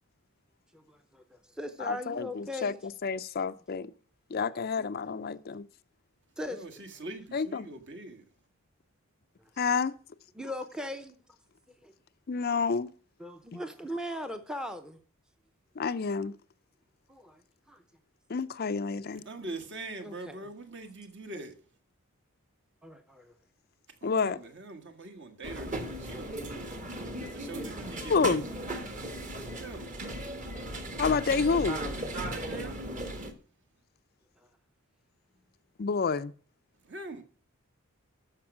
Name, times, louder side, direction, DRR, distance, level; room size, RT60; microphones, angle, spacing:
voice 1, 0.7-2.8 4.5-4.6 6.4-6.8 10.4-11.1 11.8-11.9 13.2-15.0 17.1-17.4 17.7-17.8 20.0-20.5 22.8-23.3 26.9-27.2 34.4-34.5, left 1 dB, 5° right, 0.7 m, -39 dB
voice 2, 1.8-3.9 4.3-5.7 7.3-7.7 9.6-9.9 12.3-12.9 13.5-13.6 15.8-16.3 18.3-19.2 24.0-24.4 28.0-28.4 31.0-31.8 35.8-36.3, left 5 dB, 45° left, 0.4 m, -29 dB
voice 3, 6.4-8.2 19.2-21.5 24.0-26.5 27.2-28.4 29.6-29.9 32.1-32.7 36.8-37.2, right 2 dB, 55° right, 1.7 m, -43 dB
sound 1, 25.4-33.3, right 1 dB, 35° right, 1.4 m, -37 dB
13.5 x 5.3 x 6.0 m
head